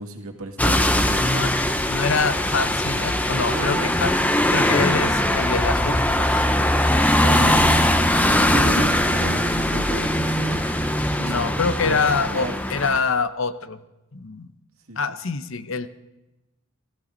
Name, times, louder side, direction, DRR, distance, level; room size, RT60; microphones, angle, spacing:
voice 1, 0.0-1.3 3.5-3.9 4.7-4.8 7.2-10.7 11.2-11.4 11.8-12.0 12.3-12.6 14.9-15.0, right 1 dB, 70° right, 3 dB, 2.2 m, -33 dB
sound 1, 0.6-13.0, left 1 dB, 5° left, 0.7 m, -21 dB
voice 2, 1.2-1.5 1.9-4.1 4.5-6.4 8.8-8.9 11.2-13.8 14.1-14.5 15.0-15.9, left 4 dB, 60° left, 12 dB, 0.8 m, -25 dB
20.0 x 14.0 x 4.0 m, 0.98 s
head